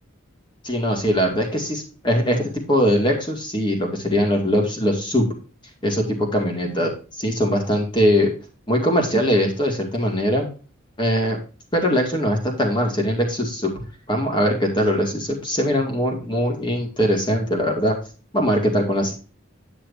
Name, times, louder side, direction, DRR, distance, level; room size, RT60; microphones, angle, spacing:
voice 1, 0.6-5.3 5.8-8.3 8.7-10.5 11.0-11.4 11.7-13.7 14.1-18.0 18.3-19.1, equal, 25° left, 2 dB, 2.2 m, -21 dB
10.0 x 6.3 x 2.6 m, 0.35 s
head